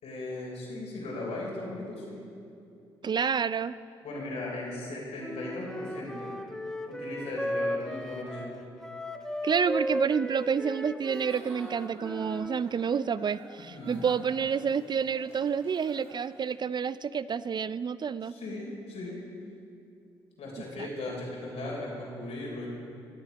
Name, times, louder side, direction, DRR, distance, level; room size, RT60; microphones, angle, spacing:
voice 1, 0.0-2.2 4.0-6.3 6.9-8.5 13.7-14.1 18.2-19.2 20.4-22.7, left 2 dB, 75° left, -3 dB, 3.5 m, -37 dB
voice 2, 3.0-3.7 9.4-18.3 20.8-20.9, right 6 dB, 40° right, 16 dB, 0.4 m, -29 dB
Wind instrument woodwind instrument, 5.2-12.6, equal, 5° left, 1.0 m, -35 dB
Giggle / Chuckle chortle, 11.0-16.5, right 2 dB, 70° right, 2.6 m, -52 dB
19.0 x 7.4 x 5.2 m, 2.6 s
supercardioid pair, 55°, 11 cm